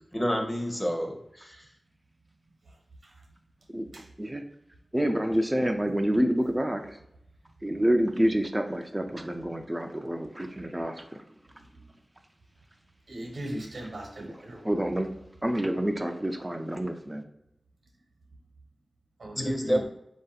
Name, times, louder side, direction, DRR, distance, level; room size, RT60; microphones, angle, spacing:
voice 1, 0.1-1.6 19.4-19.8, equal, 15° left, 2 dB, 0.8 m, -28 dB
voice 2, 4.9-7.0 7.6-11.2 14.2-14.4 14.6-15.1 15.4-17.2, right 1 dB, 15° right, 4 dB, 0.4 m, -28 dB
voice 3, 13.1-14.7 19.2-19.8, right 1 dB, 80° right, 1 dB, 0.9 m, -38 dB
4.2 x 2.7 x 3.9 m, 0.81 s
wide cardioid pair, 70°, 0 cm